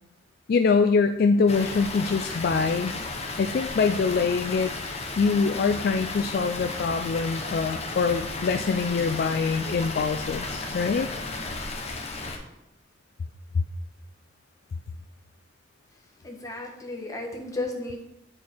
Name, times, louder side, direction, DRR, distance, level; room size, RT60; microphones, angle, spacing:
voice 1, 0.5-2.9 3.4-4.7 5.2-11.1 13.5-13.6, left 4 dB, 50° left, 8 dB, 0.3 m, -24 dB
Water, 1.5-12.4, left 3 dB, 35° left, 0.8 m, -34 dB
voice 2, 16.2-18.0, left 2 dB, 20° left, 1 dB, 1.1 m, -34 dB
8.3 x 4.4 x 4.4 m, 0.87 s
head